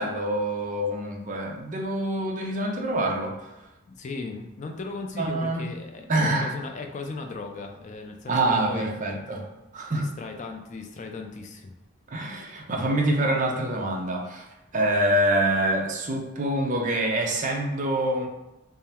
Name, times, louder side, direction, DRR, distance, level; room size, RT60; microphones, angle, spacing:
voice 1, 0.0-3.5 5.2-5.7 6.1-6.5 8.3-9.5 9.7-10.1 12.1-14.5 14.7-18.3, right 1 dB, 40° right, 1 dB, 0.6 m, -26 dB
voice 2, 3.8-9.0 9.9-11.8, left 3 dB, 35° left, 4 dB, 0.3 m, -37 dB
3.7 x 2.0 x 4.2 m, 0.98 s
head